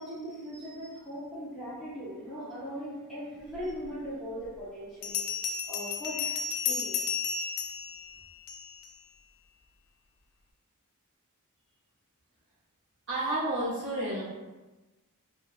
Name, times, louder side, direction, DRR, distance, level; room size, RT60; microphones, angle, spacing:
voice 1, 0.0-5.2 5.7-6.4 6.7-7.1, equal, ahead, -10 dB, 0.8 m, -39 dB
Bell, 3.8-3.9 5.0-8.9, left 6 dB, 70° left, 0.4 m, -33 dB
voice 2, 13.1-14.2, right 1 dB, 55° right, -7 dB, 1.1 m, -30 dB
2.9 x 2.7 x 2.4 m, 1.1 s
head